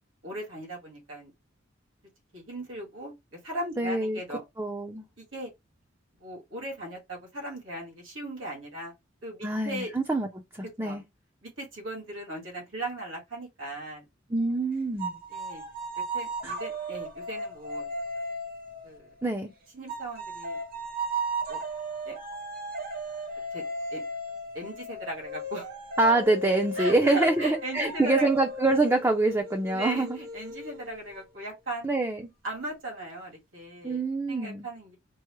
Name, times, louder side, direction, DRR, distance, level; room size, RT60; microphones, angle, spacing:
voice 1, 0.2-1.3 2.3-4.4 5.2-5.5 6.2-8.9 9.2-9.9 10.8-11.0 11.4-14.0 15.3-15.6 16.1-17.9 18.8-19.1 19.7-20.6 21.5-21.6 22.0-22.1 23.5-23.6 23.9-24.0 24.5-25.7 26.8-28.3 29.7-31.9 32.4-34.0 34.3-35.0, right 1 dB, 85° right, 1.9 m, -37 dB
voice 2, 3.8-4.2 4.6-5.1 9.4-10.3 10.5-11.0 14.3-15.2 16.4-16.5 19.2-19.5 26.0-30.2 31.8-32.2 33.8-34.7, right 2 dB, 15° right, 0.4 m, -25 dB
sound 1, 15.0-19.3 19.9-31.2, right 2 dB, 50° right, 0.7 m, -36 dB
4.6 x 2.0 x 3.0 m
head